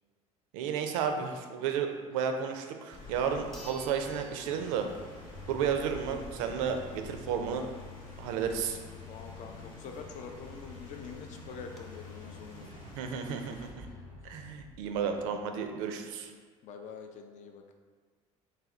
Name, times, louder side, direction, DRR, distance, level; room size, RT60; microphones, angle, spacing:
voice 1, 0.5-4.9 5.5-7.7 8.2-8.8 13.0-13.9 14.2-16.3, right 7 dB, 75° right, 5 dB, 0.4 m, -32 dB
sound 1, 2.7-2.8 3.5-5.3 5.7-5.8 10.4-10.5 10.7-10.8 11.4-11.8, right 1 dB, ahead, 0.6 m, -52 dB
Rain, 2.9-13.7, left 2 dB, 70° left, 1.2 m, -49 dB
sound 2, 4.2-15.8, left 5 dB, 90° left, 0.7 m, -50 dB
voice 2, 9.1-12.7 16.6-17.6, left 5 dB, 45° left, 4 dB, 0.4 m, -45 dB
3.3 x 2.2 x 3.6 m, 1.5 s
hypercardioid pair, 65°, 17 cm